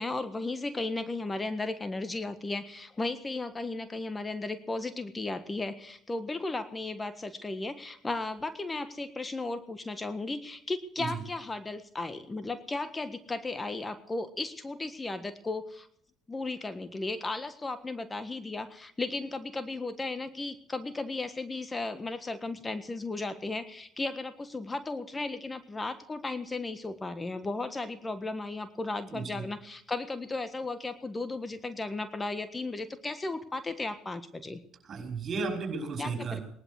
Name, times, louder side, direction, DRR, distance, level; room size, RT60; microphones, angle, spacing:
voice 1, 0.0-15.9 16.3-34.6 36.0-36.4, left 2 dB, 20° left, 11 dB, 1.5 m, -35 dB
voice 2, 29.1-29.4 34.8-36.4, right 4 dB, 45° right, 3 dB, 5.7 m, -34 dB
19.5 x 11.5 x 6.4 m, 0.67 s
supercardioid pair, 70°, 0 cm